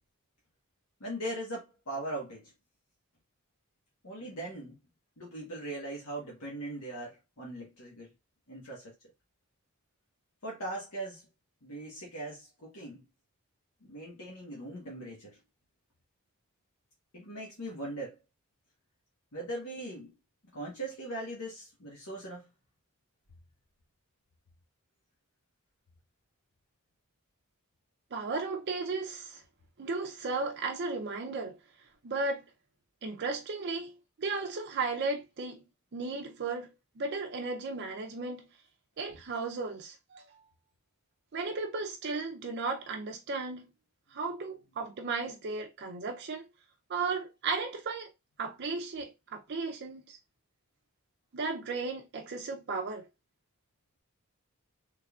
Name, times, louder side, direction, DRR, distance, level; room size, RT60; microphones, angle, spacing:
voice 1, 1.0-2.5 4.0-4.8 5.2-8.1 8.5-8.9 10.4-11.2 11.6-13.0 13.8-15.4 17.1-18.2 19.3-20.1 20.5-22.5, right 1 dB, 70° left, 1.2 m, -40 dB
voice 2, 28.1-29.4 29.8-31.6 32.0-32.5 33.0-33.9 34.2-35.6 35.9-36.7 37.0-38.5 39.0-40.4 41.3-43.7 44.1-46.5 46.9-48.1 48.4-50.2 51.3-53.1, right 3 dB, 50° right, 0.5 m, -35 dB
3.6 x 3.2 x 2.3 m
head